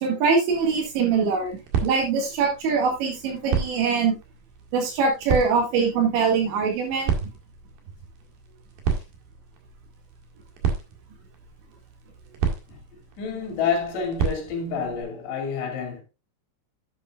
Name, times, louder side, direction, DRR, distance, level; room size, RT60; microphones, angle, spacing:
voice 1, 0.0-4.2 4.7-7.3, right 5 dB, 80° right, 4.2 m, -23 dB
sound 1, 0.5-15.0, right 7 dB, 60° right, 3.4 m, -32 dB
voice 2, 13.2-16.0, left 6 dB, 75° left, 4.7 m, -28 dB
11.0 x 8.8 x 2.4 m
omnidirectional pair, 5.1 m